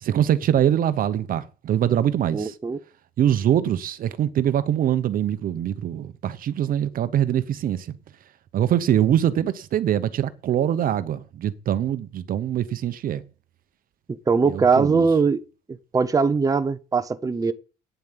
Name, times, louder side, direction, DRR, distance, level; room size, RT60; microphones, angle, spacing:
voice 1, 0.0-2.6 3.2-7.9 8.5-13.2 14.4-15.1, right 10 dB, 55° right, 0.9 m, -23 dB
voice 2, 2.3-2.8 14.3-15.4 15.9-17.5, right 5 dB, 20° right, 0.8 m, -20 dB
9.4 x 7.3 x 7.5 m
cardioid pair, 110°, 17 cm